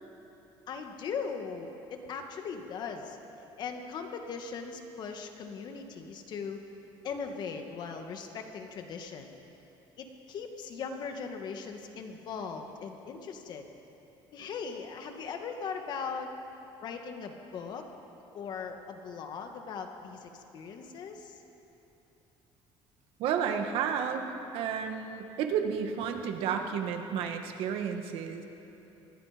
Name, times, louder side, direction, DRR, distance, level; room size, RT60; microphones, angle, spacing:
voice 1, 0.7-3.2 3.6-6.6 7.0-9.3 10.0-13.7 14.3-16.3 16.8-17.9 18.3-21.4, left 5 dB, 50° left, 4 dB, 2.0 m, -39 dB
voice 2, 23.2-24.3 24.5-28.4, right 7 dB, 70° right, 5 dB, 1.9 m, -31 dB
26.5 x 21.5 x 5.3 m, 3.0 s
cardioid pair, 155°, 10 cm